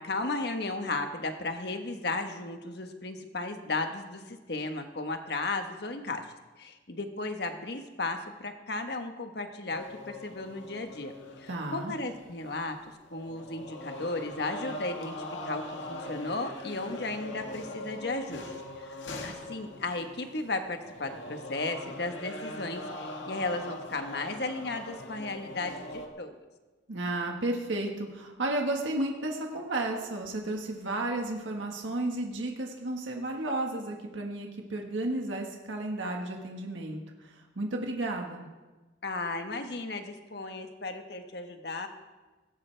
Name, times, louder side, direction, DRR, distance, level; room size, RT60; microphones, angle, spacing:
voice 1, 0.0-6.2 6.6-11.1 11.4-12.8 13.1-15.2 15.4-15.6 15.9-18.5 18.8-26.3 39.0-41.9, left 2 dB, 60° left, 6 dB, 1.3 m, -35 dB
sound 1, 9.7-12.8 13.1-26.1, left 2 dB, 80° left, 1.8 m, -42 dB
voice 2, 11.5-11.9 26.9-38.5, right 2 dB, 85° right, 1 dB, 1.6 m, -33 dB
17.5 x 16.5 x 3.4 m, 1.2 s
head